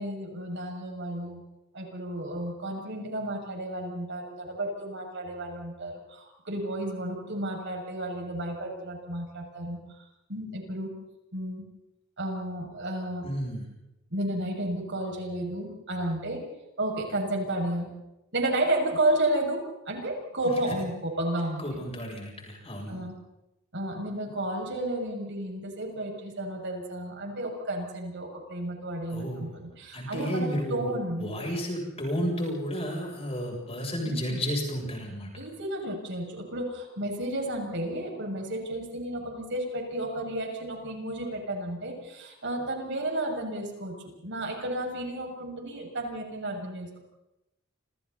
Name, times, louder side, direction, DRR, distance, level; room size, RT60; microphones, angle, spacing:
voice 1, 0.0-1.4 1.7-9.8 10.3-10.9 11.3-11.6 12.2-13.3 14.1-16.4 16.8-17.9 18.3-21.8 22.9-23.2 23.7-31.3 34.0-34.4 35.3-44.0 44.2-47.0, right 1 dB, 60° right, 1 dB, 6.8 m, -32 dB
voice 2, 13.2-13.7 21.6-23.0 29.1-29.6 29.9-35.3, equal, 30° left, 0 dB, 7.9 m, -32 dB
29.5 x 28.0 x 4.2 m, 0.93 s
head